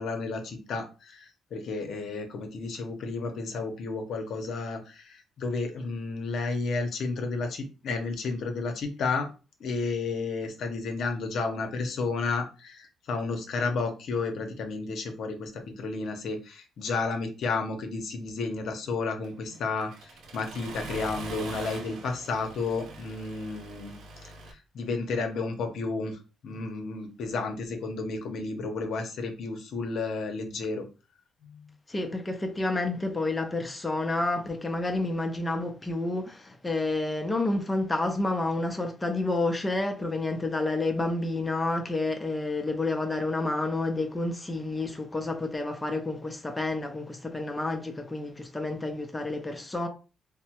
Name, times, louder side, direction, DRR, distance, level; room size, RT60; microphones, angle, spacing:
voice 1, 0.0-9.3 9.6-23.9 24.5-30.9 31.4-31.7, left 3 dB, 70° left, 0.7 m, -32 dB
Accelerating revving vroom, 19.2-24.5, right 2 dB, 80° right, 0.6 m, -43 dB
voice 2, 31.9-49.9, left 2 dB, 15° left, 0.5 m, -29 dB
3.4 x 2.0 x 2.8 m
cardioid pair, 90°, 0 cm